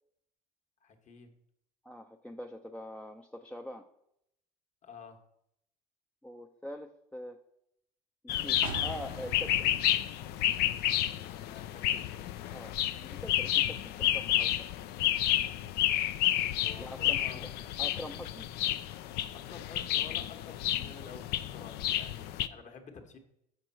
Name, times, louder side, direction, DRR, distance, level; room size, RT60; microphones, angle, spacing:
voice 1, 0.8-1.4 4.8-5.2 11.1-12.3 16.6-17.7 19.3-23.2, left 5 dB, 40° left, 5 dB, 1.3 m, -50 dB
voice 2, 1.8-3.9 6.2-7.4 8.2-9.7 12.5-14.5 16.8-17.5 17.8-18.5 20.8-20.9, left 1 dB, 5° left, 3 dB, 0.5 m, -44 dB
sound 1, 8.3-22.5, left 12 dB, 60° left, 0.5 m, -31 dB
sound 2, 8.6-12.4 12.7-12.8, right 5 dB, 80° right, 0.9 m, -46 dB
7.3 x 5.2 x 4.4 m, 0.77 s
hypercardioid pair, 65°, 19 cm